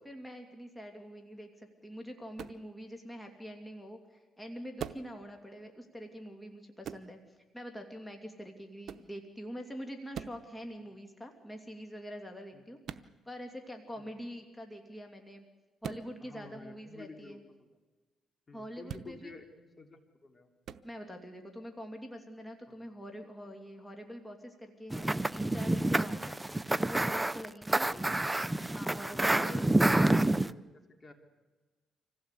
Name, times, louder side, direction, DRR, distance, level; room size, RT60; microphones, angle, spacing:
voice 1, 0.0-7.2 7.5-15.4 15.8-17.4 18.5-19.3 20.8-26.4 26.9-27.9 28.7-29.7, equal, 10° left, 3 dB, 2.6 m, -45 dB
sound 1, 2.4-2.6 4.8-5.1 6.8-7.1 8.8-9.1 10.1-10.4 12.8-13.1 15.8-16.1 18.8-19.1 20.6-20.8, right 8 dB, 65° right, 0.8 m, -41 dB
voice 2, 16.2-17.7 18.5-20.5 22.7-22.8 27.9-28.3 29.1-30.6 31.0-31.1, left 3 dB, 35° left, 5 dB, 2.8 m, -50 dB
sound 2, 24.9-30.5, right 1 dB, 10° right, 0.6 m, -28 dB
26.0 x 16.0 x 8.3 m, 1.3 s
cardioid pair, 90°, 0 cm